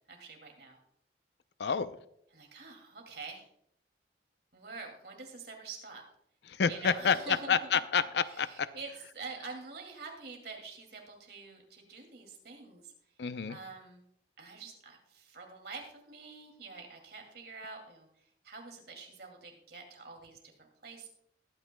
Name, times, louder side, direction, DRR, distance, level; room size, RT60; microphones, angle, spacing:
voice 1, 0.1-0.8 2.3-3.5 4.5-6.0 6.7-7.8 8.2-12.9 13.5-14.0 14.4-18.1 18.4-21.1, right 4 dB, 60° right, 2.4 m, -46 dB
voice 2, 1.6-2.0 6.5-8.7 13.2-13.6, left 6 dB, 70° left, 0.5 m, -29 dB
20.5 x 9.1 x 2.2 m
head